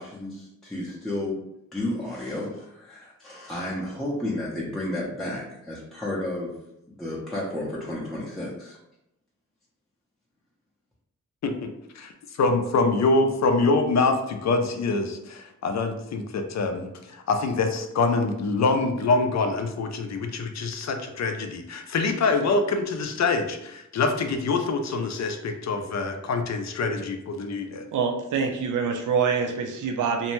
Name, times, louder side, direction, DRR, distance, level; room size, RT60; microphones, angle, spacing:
voice 1, 0.0-1.4 1.7-6.5 7.0-8.8, left 1 dB, ahead, -6 dB, 0.6 m, -32 dB
voice 2, 12.4-27.8, left 3 dB, 55° left, 5 dB, 0.5 m, -25 dB
voice 3, 27.9-30.3, right 6 dB, 70° right, 2 dB, 0.5 m, -25 dB
2.6 x 2.1 x 3.0 m, 0.83 s
cardioid pair, 80°, 32 cm